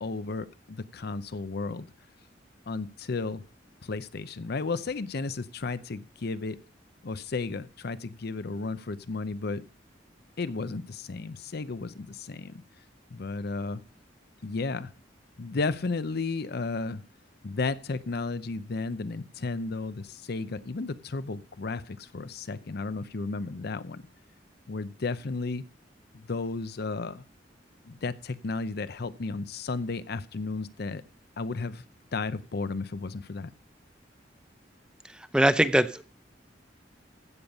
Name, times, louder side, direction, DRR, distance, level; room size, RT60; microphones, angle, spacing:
voice 1, 0.0-1.9 2.7-3.4 3.8-6.6 7.0-9.6 10.4-12.6 13.1-13.8 14.4-14.9 15.4-17.0 17.4-24.0 24.7-25.6 26.1-27.2 27.9-31.0 31.4-31.8 32.1-33.5, left 3 dB, 60° left, 14 dB, 0.6 m, -33 dB
voice 2, 35.3-36.0, right 1 dB, 5° right, 13 dB, 0.5 m, -21 dB
15.0 x 5.2 x 7.1 m, 0.41 s
head